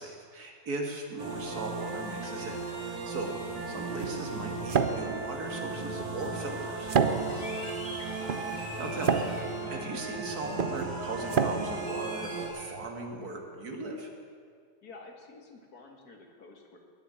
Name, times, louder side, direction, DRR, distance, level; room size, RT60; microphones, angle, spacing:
voice 1, 0.0-3.4 3.7-6.9 8.5-14.1, right 2 dB, 65° right, 2 dB, 2.4 m, -38 dB
sound 1, 1.2-12.5, right 3 dB, 90° right, 3.1 m, -37 dB
sound 2, 3.0-12.9, right 6 dB, 50° right, 0.6 m, -32 dB
sound 3, 6.5-12.8, right 1 dB, 25° left, 2.8 m, -44 dB
voice 2, 14.8-16.8, left 3 dB, 65° left, 2 dB, 2.4 m, -50 dB
20.0 x 7.3 x 8.9 m, 2.1 s
omnidirectional pair, 1.8 m